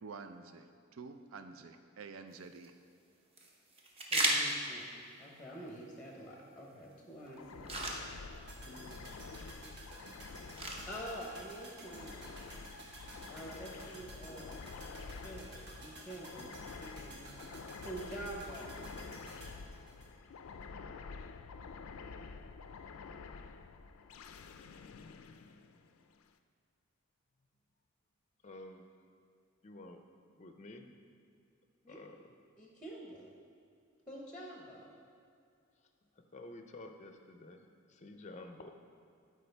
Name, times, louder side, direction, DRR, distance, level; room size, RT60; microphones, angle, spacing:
voice 1, 0.0-2.7, right 4 dB, 75° right, 8 dB, 0.5 m, -49 dB
sound 1, 2.3-15.3, right 1 dB, 30° right, 0.8 m, -41 dB
voice 2, 4.1-7.8 8.6-9.1 10.9-12.4 13.3-14.5 14.9-18.8 31.8-32.0 32.6-33.3 34.1-34.9, right 1 dB, 5° left, -2 dB, 0.8 m, -47 dB
sound 2, 7.4-26.2, left 4 dB, 90° left, 0.4 m, -49 dB
sound 3, 8.5-20.7 20.9-21.0, right 1 dB, 55° right, 1.1 m, -52 dB
voice 3, 28.4-28.8 29.6-30.0 30.4-31.0 31.9-32.3 36.1-38.7, left 2 dB, 35° left, 5 dB, 0.5 m, -51 dB
12.0 x 4.8 x 3.4 m, 2.5 s
head